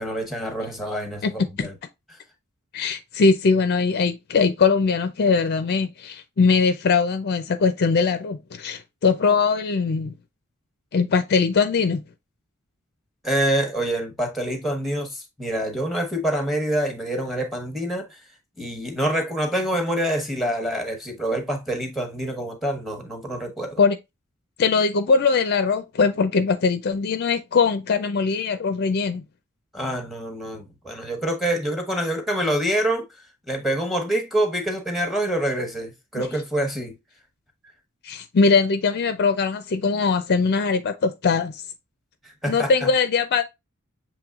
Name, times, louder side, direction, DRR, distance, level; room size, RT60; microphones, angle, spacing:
voice 1, 0.0-1.7 13.2-18.1 18.6-23.8 29.7-33.0 33.5-36.9 42.4-42.9, right 1 dB, ahead, 1.0 m, -26 dB
voice 2, 1.2-1.7 2.7-10.1 10.9-12.0 23.8-24.0 24.6-29.2 36.2-36.3 38.0-41.6 42.5-43.4, left 4 dB, 45° left, 0.4 m, -21 dB
6.9 x 3.1 x 2.4 m
head